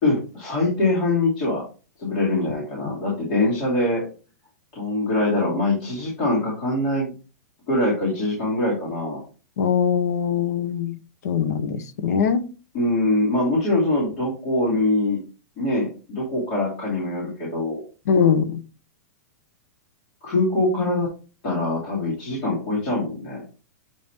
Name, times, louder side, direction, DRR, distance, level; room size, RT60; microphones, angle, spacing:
voice 1, 0.0-1.6 2.0-4.1 4.7-7.1 7.7-9.2 12.7-15.2 15.6-17.8 20.2-21.1 21.4-23.4, left 2 dB, 30° left, 2.8 m, -23 dB
voice 2, 9.6-11.0 11.2-12.5 18.1-18.6, left 7 dB, 65° left, 0.9 m, -21 dB
8.0 x 5.4 x 3.0 m
supercardioid pair, 180°, 9 cm